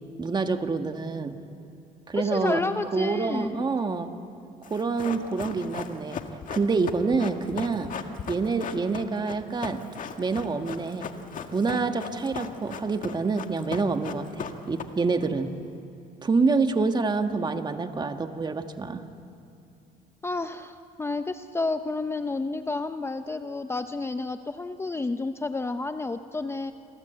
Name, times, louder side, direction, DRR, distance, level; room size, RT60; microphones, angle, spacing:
voice 1, 0.2-1.4 2.1-2.6 2.9-4.1 4.7-6.2 6.5-7.9 8.3-9.8 10.2-11.1 11.5-15.5 16.2-19.0, right 4 dB, 25° right, 7 dB, 1.6 m, -27 dB
voice 2, 2.1-3.7 20.2-26.7, left 3 dB, 15° left, 9 dB, 0.7 m, -30 dB
Run, 4.6-15.3 15.5-15.6, left 7 dB, 50° left, 1.8 m, -38 dB
29.0 x 23.0 x 8.1 m, 2.6 s
cardioid pair, 110°, 17 cm